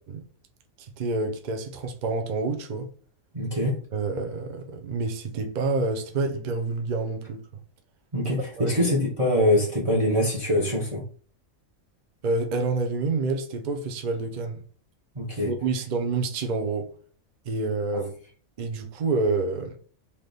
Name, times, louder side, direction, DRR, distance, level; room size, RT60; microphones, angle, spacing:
voice 1, 0.8-2.9 3.9-7.4 8.6-8.8 12.2-14.6 15.4-16.9 17.4-18.1 18.6-19.8, right 3 dB, 50° right, 0.6 m, -28 dB
voice 2, 3.3-3.8 8.1-11.0 15.1-15.5 17.9-18.0, left 1 dB, 25° right, 1.0 m, -24 dB
3.3 x 2.9 x 3.9 m
omnidirectional pair, 1.4 m